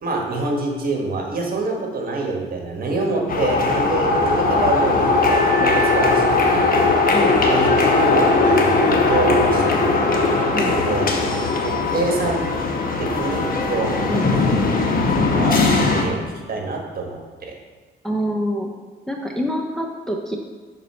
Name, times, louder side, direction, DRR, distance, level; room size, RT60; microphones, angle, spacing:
voice 1, 0.0-6.7 7.5-11.0 11.6-12.4 13.0-14.4 15.3-17.5, right 3 dB, 50° right, 1 dB, 1.4 m, -26 dB
sound 1, 3.3-16.0, left 3 dB, 45° left, 1.0 m, -19 dB
voice 2, 18.0-18.7 19.1-20.4, equal, ahead, 0 dB, 0.6 m, -25 dB
6.0 x 4.3 x 4.2 m, 1.5 s
cardioid pair, 90°, 20 cm